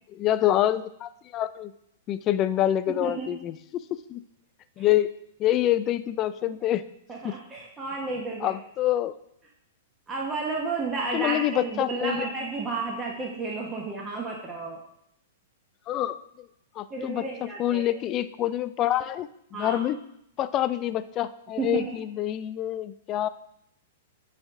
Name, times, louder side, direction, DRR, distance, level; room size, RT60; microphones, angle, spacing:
voice 1, 0.1-1.7 2.1-3.6 4.1-4.2 4.8-5.1 5.4-6.8 7.2-7.3 8.4-9.1 11.1-12.3 15.9-16.5 16.8-17.2 17.6-20.0 20.4-23.3, left 12 dB, 35° left, 13 dB, 0.3 m, -26 dB
voice 2, 7.1-8.5 10.1-14.8 16.9-17.9 19.5-19.8 21.6-21.9, right 3 dB, 20° right, -2 dB, 1.0 m, -32 dB
8.8 x 3.3 x 3.6 m, 0.76 s
hypercardioid pair, 120°, 0 cm